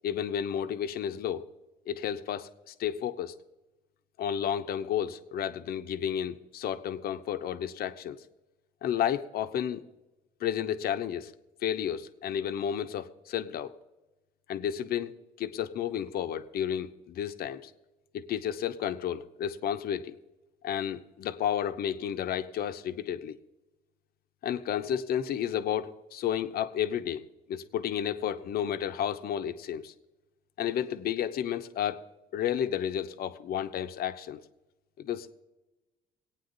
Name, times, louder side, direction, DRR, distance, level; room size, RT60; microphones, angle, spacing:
voice 1, 0.0-1.4 1.9-3.3 4.2-8.2 8.8-9.8 10.4-11.3 11.6-13.7 14.5-17.7 18.1-20.2 20.6-23.4 24.4-29.9 30.6-32.0 32.3-34.4 35.0-35.3, left 9 dB, 65° left, 9 dB, 0.9 m, -32 dB
22.5 x 9.1 x 4.0 m, 1.1 s
cardioid pair, 110°, 17 cm